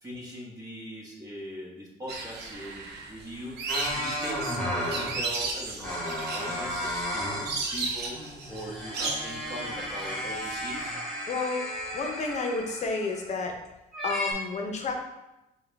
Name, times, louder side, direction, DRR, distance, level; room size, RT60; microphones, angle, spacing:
voice 1, 0.0-3.7 3.9-11.0, equal, 20° right, -3 dB, 1.2 m, -41 dB
sound 1, 2.1-10.8, right 3 dB, 75° right, 0.7 m, -35 dB
sound 2, 3.7-5.2 5.8-7.6 7.9-13.5 13.9-14.3, equal, ahead, 1.2 m, -34 dB
voice 2, 11.3-11.6 11.9-13.6 14.0-14.9, left 3 dB, 45° left, 3 dB, 0.7 m, -30 dB
4.7 x 2.3 x 3.4 m, 0.94 s
cardioid pair, 110°, 17 cm